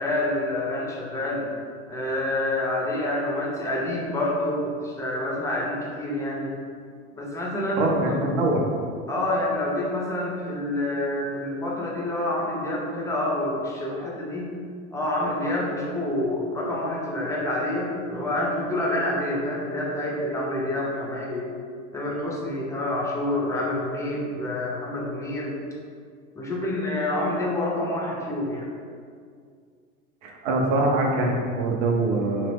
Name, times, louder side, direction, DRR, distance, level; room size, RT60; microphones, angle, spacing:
voice 1, 0.0-1.5 1.9-6.6 7.1-8.2 9.1-14.5 14.9-21.5 21.9-25.5 26.4-28.7, left 1 dB, 10° left, -3 dB, 0.6 m, -27 dB
voice 2, 7.8-8.7 30.2-32.5, right 2 dB, 70° right, 1 dB, 0.6 m, -23 dB
2.8 x 2.0 x 3.4 m, 2.1 s
hypercardioid pair, 80°, 37 cm